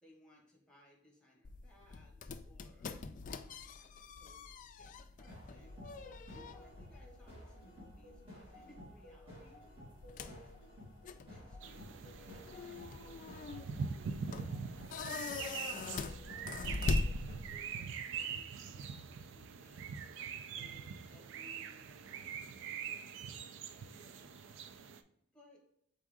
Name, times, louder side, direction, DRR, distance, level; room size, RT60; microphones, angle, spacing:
voice 1, 0.0-5.7 6.3-9.6 10.2-10.5 11.3-15.0 15.3-16.8 17.4-19.9 20.5-24.7 25.3-25.6, left 1 dB, 5° left, -3 dB, 1.7 m, -64 dB
sound 1, 1.4-17.8, left 3 dB, 40° left, 0.3 m, -42 dB
sound 2, 5.2-17.3, equal, 25° right, 1.9 m, -54 dB
sound 3, 11.6-25.0, right 6 dB, 65° right, 0.4 m, -43 dB
4.1 x 3.6 x 3.6 m, 0.72 s
head